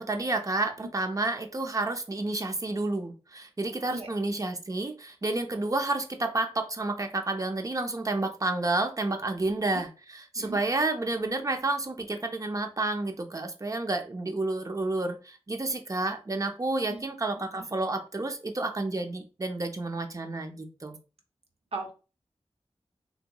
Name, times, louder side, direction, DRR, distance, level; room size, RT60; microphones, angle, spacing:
voice 1, 0.0-21.0, right 2 dB, 30° right, 5 dB, 0.5 m, -30 dB
voice 2, 0.8-0.9 3.9-4.1 9.7-9.8 10.4-10.6 16.9-17.0 17.4-17.6 21.7-21.9, right 3 dB, 70° right, 3 dB, 0.7 m, -38 dB
3.5 x 2.9 x 2.2 m, 0.34 s
wide cardioid pair, 65°, 11 cm